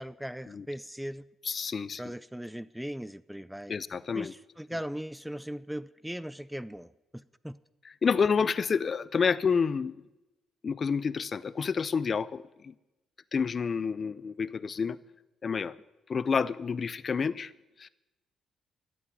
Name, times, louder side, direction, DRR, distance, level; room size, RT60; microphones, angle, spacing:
voice 1, 0.0-1.3 2.0-3.8 4.1-7.6, equal, 5° right, 18 dB, 0.4 m, -39 dB
voice 2, 1.5-2.0 3.7-4.3 8.0-10.0 10.6-12.7 13.3-15.0 15.4-15.7 16.1-17.5 17.8-17.9, left 5 dB, 45° left, 18 dB, 0.6 m, -29 dB
13.5 x 8.6 x 9.3 m, 1.0 s
cardioid pair, 90°, 0 cm